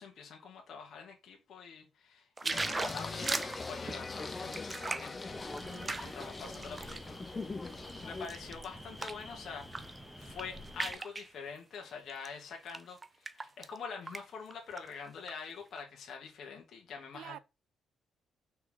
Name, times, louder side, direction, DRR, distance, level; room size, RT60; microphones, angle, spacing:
voice 1, 0.0-5.4 6.0-7.2 8.0-9.9 10.2-13.0 13.2-17.4, left 6 dB, 65° left, 2.0 m, -45 dB
sound 1, 2.4-7.1 7.6-9.3 9.6-10.0 10.2-11.3 12.1-12.3 12.7-13.8 14.1-14.2 14.5-15.3 15.8-15.9, right 3 dB, 25° right, 0.5 m, -39 dB
Singing, 2.5-8.3, left 3 dB, 30° left, 1.1 m, -41 dB
sound 2, 5.3-11.0, equal, 5° right, 1.8 m, -49 dB
voice 2, 5.7-6.9 17.1-17.4, right 11 dB, 80° right, 0.5 m, -51 dB
5.6 x 4.6 x 3.8 m
cardioid pair, 90°, 0 cm